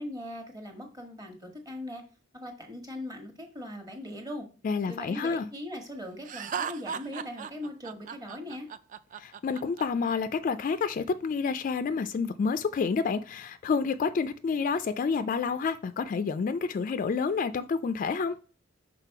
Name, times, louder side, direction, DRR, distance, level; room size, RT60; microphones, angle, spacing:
voice 1, 0.0-2.0 2.3-4.5 4.9-8.7, left 1 dB, 20° right, 1.2 m, -40 dB
voice 2, 4.6-5.5 9.2-18.4, left 5 dB, 45° left, 0.3 m, -29 dB
Laughter, 6.3-10.2, right 7 dB, 40° right, 0.3 m, -37 dB
5.8 x 3.7 x 4.6 m
head